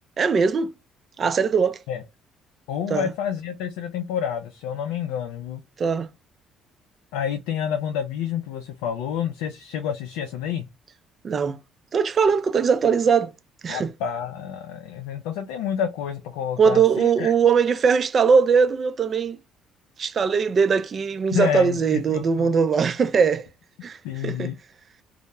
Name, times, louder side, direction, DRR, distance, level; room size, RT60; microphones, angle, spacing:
voice 1, 0.2-0.7 1.2-1.8 2.9-3.1 5.8-6.1 11.2-11.6 11.9-13.3 13.6-13.9 16.6-19.4 20.0-23.5 23.8-24.5, right 6 dB, 45° right, 0.3 m, -20 dB
voice 2, 2.7-5.6 7.1-10.7 13.7-17.3 21.3-22.5 24.0-24.6, left 8 dB, 80° left, 0.3 m, -29 dB
2.2 x 2.0 x 2.8 m
hypercardioid pair, 60°, 0 cm